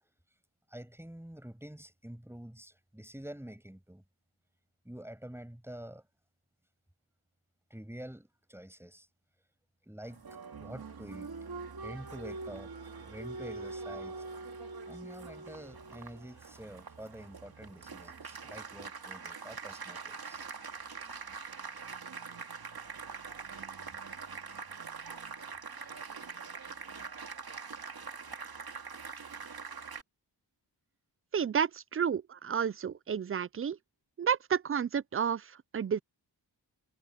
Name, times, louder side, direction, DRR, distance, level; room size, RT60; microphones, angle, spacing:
voice 1, 0.7-4.0 4.9-6.0 7.7-9.1 9.8-10.2 10.6-11.3 11.8-12.7 13.0-14.2 14.9-20.4, right 1 dB, 5° right, 7.0 m, -47 dB
Applause, 10.0-30.0, right 4 dB, 60° right, 2.3 m, -44 dB
voice 2, 31.3-33.8 34.2-36.0, right 7 dB, 35° right, 0.4 m, -31 dB
wide cardioid pair, 90°, 42 cm